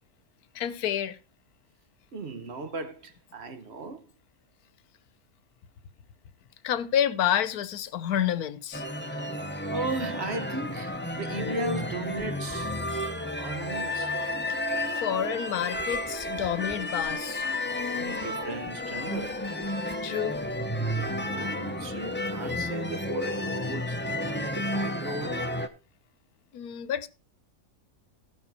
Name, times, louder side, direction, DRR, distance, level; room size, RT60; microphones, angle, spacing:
voice 1, 0.5-1.2 6.6-8.8 14.5-14.6 14.9-17.5 20.0-20.4 26.5-27.1, left 10 dB, 85° left, 1.3 m, -29 dB
voice 2, 2.1-4.1 9.0-12.8 13.4-14.2 17.7-19.5 21.1-24.0 24.4-25.6, right 3 dB, 50° right, 1.1 m, -37 dB
sound 1, 8.7-25.7, left 1 dB, 10° left, 0.5 m, -32 dB
15.0 x 5.7 x 4.2 m
omnidirectional pair, 1.6 m